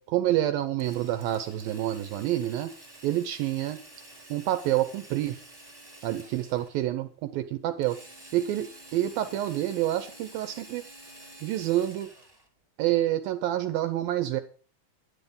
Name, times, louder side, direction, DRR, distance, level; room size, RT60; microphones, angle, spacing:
voice 1, 0.0-2.7 3.0-3.8 4.3-5.4 6.0-8.0 8.3-10.8 11.4-12.1 12.8-14.4, right 13 dB, 80° right, 10 dB, 2.2 m, -28 dB
Drill, 0.8-6.9 7.8-12.5, right 1 dB, 15° right, 0.8 m, -49 dB
10.0 x 10.0 x 5.2 m, 0.39 s
omnidirectional pair, 4.7 m